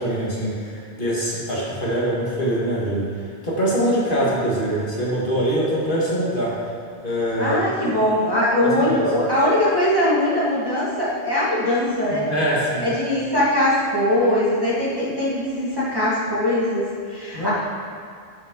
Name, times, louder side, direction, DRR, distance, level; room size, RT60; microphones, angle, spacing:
voice 1, 0.0-6.6 7.0-7.6 8.6-9.0 12.1-12.9 17.3-17.5, equal, 50° left, -6 dB, 1.9 m, -23 dB
voice 2, 7.4-12.3 12.8-17.5, left 1 dB, 20° right, -8 dB, 1.8 m, -21 dB
11.5 x 5.6 x 3.8 m, 2.3 s
omnidirectional pair, 1.1 m